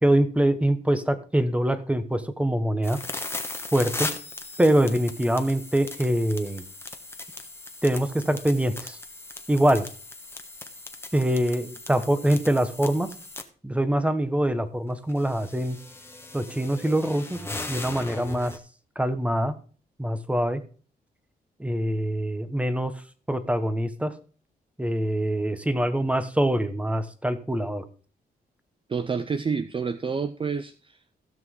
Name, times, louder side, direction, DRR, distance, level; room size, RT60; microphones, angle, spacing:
voice 1, 0.0-3.0 3.7-4.1 4.6-6.6 7.8-9.0 9.5-9.9 11.1-13.1 13.6-15.8 16.3-17.4 17.7-18.6 18.9-19.5 20.0-20.6 21.6-22.9 23.3-24.1 24.8-27.8, right 1 dB, 10° right, 11 dB, 1.3 m, -24 dB
sound 1, 2.8-13.4 14.9-18.6, left 2 dB, 15° left, 1.3 m, -38 dB
voice 2, 28.9-31.2, right 5 dB, 30° right, 11 dB, 0.6 m, -29 dB
16.0 x 6.0 x 3.8 m, 0.39 s
cardioid pair, 85°, 17 cm